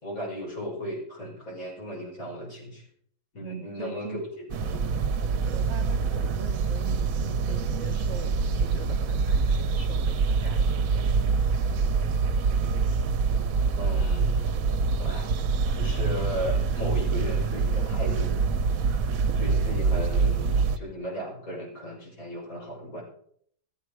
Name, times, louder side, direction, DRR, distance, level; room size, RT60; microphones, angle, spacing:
voice 1, 0.0-2.8 3.3-4.8 13.8-14.5 15.0-15.3 15.7-18.3 19.3-23.0, equal, 60° left, -3 dB, 6.2 m, -36 dB
voice 2, 3.4-4.2 5.5-11.2, right 4 dB, 45° right, 5 dB, 1.4 m, -42 dB
sound 1, 4.5-20.8, right 5 dB, 65° right, 1.2 m, -25 dB
15.0 x 14.0 x 4.8 m, 0.64 s
omnidirectional pair, 1.7 m